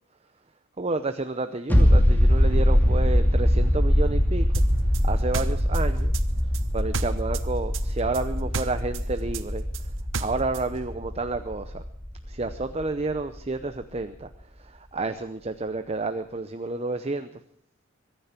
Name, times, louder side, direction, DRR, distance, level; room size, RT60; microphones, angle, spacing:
voice 1, 0.8-4.5 5.0-6.1 6.7-9.6 10.2-11.8 12.3-14.3 14.6-17.3, right 3 dB, 30° right, 10 dB, 0.7 m, -30 dB
sound 1, 1.7-13.0 13.3-13.4, equal, 10° left, 2.7 m, -22 dB
sound 2, 4.5-7.5 7.7-10.7, right 5 dB, 65° right, 0.9 m, -33 dB
23.5 x 10.5 x 5.9 m, 0.69 s
head